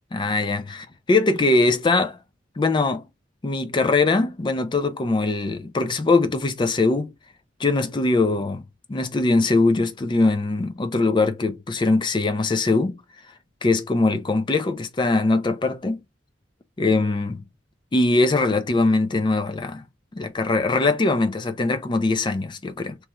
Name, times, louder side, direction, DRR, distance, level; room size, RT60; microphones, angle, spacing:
voice 1, 0.1-2.2 2.6-3.0 3.4-7.1 7.6-8.6 8.9-13.0 13.6-16.0 16.8-17.4 17.9-19.8 20.1-23.0, left 3 dB, 25° left, 0.4 m, -21 dB
3.1 x 2.3 x 2.9 m
head